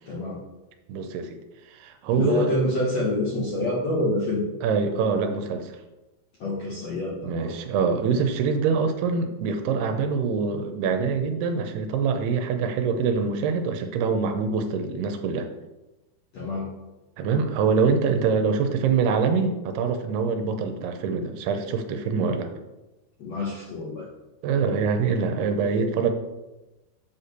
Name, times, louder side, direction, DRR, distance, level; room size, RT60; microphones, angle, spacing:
voice 1, 0.1-0.4 2.1-4.4 6.4-7.5 16.3-16.7 23.2-24.1, left 1 dB, 65° left, -5 dB, 1.6 m, -27 dB
voice 2, 0.9-1.4 1.7-2.5 4.6-5.8 7.2-15.5 17.2-22.5 24.4-26.1, right 5 dB, 80° right, 6 dB, 2.7 m, -24 dB
7.8 x 4.2 x 6.7 m, 1.0 s
omnidirectional pair, 4.7 m